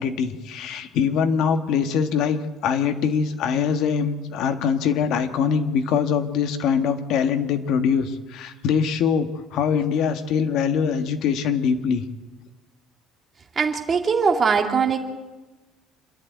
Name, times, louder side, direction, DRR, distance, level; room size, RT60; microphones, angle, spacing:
voice 1, 0.0-12.0, left 6 dB, 55° left, 8 dB, 1.6 m, -23 dB
voice 2, 13.6-15.0, right 5 dB, 25° right, 3 dB, 2.3 m, -21 dB
27.0 x 11.0 x 9.3 m, 1.2 s
cardioid pair, 165°, 0 cm